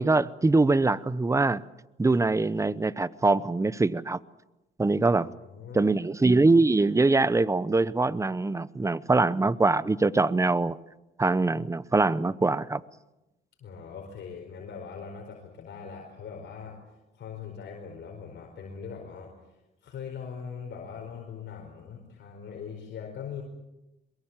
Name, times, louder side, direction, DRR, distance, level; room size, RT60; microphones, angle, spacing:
voice 1, 0.0-1.6 2.0-4.2 4.8-5.3 5.7-10.8 11.2-12.8, right 3 dB, 15° right, 18 dB, 0.8 m, -23 dB
voice 2, 5.1-5.9 13.6-16.8 17.1-19.6 19.8-23.4, left 6 dB, 65° left, 1 dB, 4.8 m, -41 dB
23.0 x 22.5 x 7.4 m, 0.97 s
cardioid pair, 90°, 20 cm